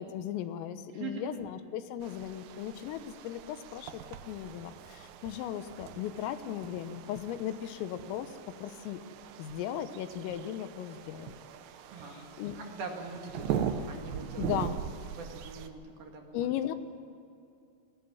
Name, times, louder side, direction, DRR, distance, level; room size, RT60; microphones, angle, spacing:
voice 1, 0.0-4.0 4.3-8.3 8.6-9.0 9.4-11.4 12.4-12.6 13.4-13.5 14.4-14.8 16.3-16.8, left 11 dB, 85° left, 10 dB, 3.8 m, -37 dB
voice 2, 0.9-1.5 11.9-12.3 12.6-14.6 15.1-16.8, right 4 dB, 55° right, 2 dB, 3.5 m, -42 dB
sound 1, 2.0-15.7, right 8 dB, 70° right, 2.9 m, -41 dB
21.5 x 18.0 x 9.6 m, 2.6 s
omnidirectional pair, 5.8 m